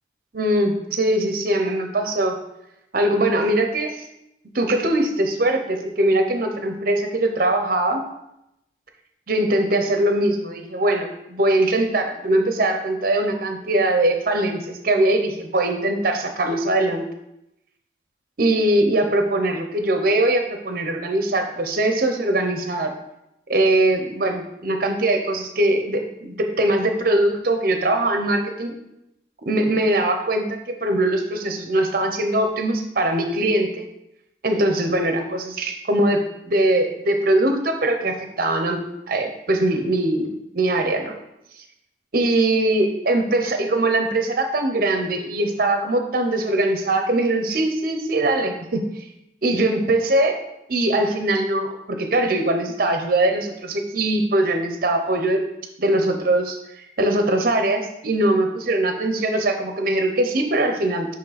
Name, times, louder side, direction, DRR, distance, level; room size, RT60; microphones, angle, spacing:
voice 1, 0.3-2.4 2.9-4.0 4.5-8.0 9.3-17.0 18.4-22.9 23.5-28.7 29.5-33.9 34.4-38.8 39.1-40.3 40.5-41.2 42.1-48.8 49.4-50.4 50.7-55.4 55.8-61.1, right 1 dB, 50° right, 5 dB, 0.8 m, -21 dB
8.2 x 3.2 x 4.1 m, 0.85 s
head